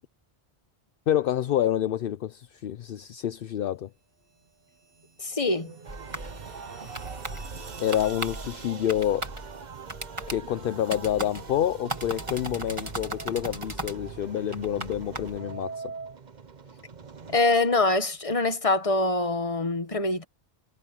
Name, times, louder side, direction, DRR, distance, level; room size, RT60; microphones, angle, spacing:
voice 1, 1.1-3.9 7.8-9.3 10.3-15.9, left 11 dB, 65° left, 0.8 m, -28 dB
sound 1, 4.7-9.2, right 4 dB, 65° right, 1.6 m, -45 dB
voice 2, 5.2-5.7 17.3-20.2, left 2 dB, 35° left, 1.5 m, -24 dB
sound 2, 5.8-17.4, right 5 dB, 45° right, 1.1 m, -43 dB
sound 3, 5.9-15.4, right 2 dB, 30° right, 2.4 m, -38 dB
omnidirectional pair, 1.0 m